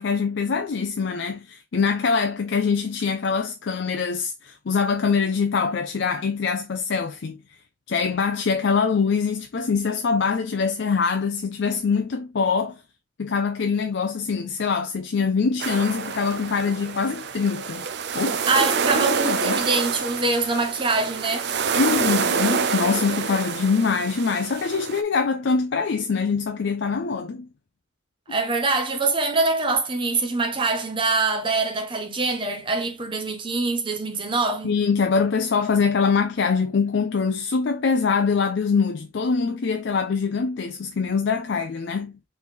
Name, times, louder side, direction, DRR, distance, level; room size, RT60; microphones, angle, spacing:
voice 1, 0.0-7.4 7.9-12.8 13.2-17.8 18.1-18.7 18.9-19.6 21.7-27.5 34.6-42.1, left 5 dB, 65° left, 0.5 m, -24 dB
sound 1, 15.6-25.0, right 6 dB, 55° right, 0.4 m, -27 dB
voice 2, 18.5-21.5 28.3-34.7, right 3 dB, 25° right, 0.9 m, -24 dB
4.1 x 3.2 x 3.5 m
head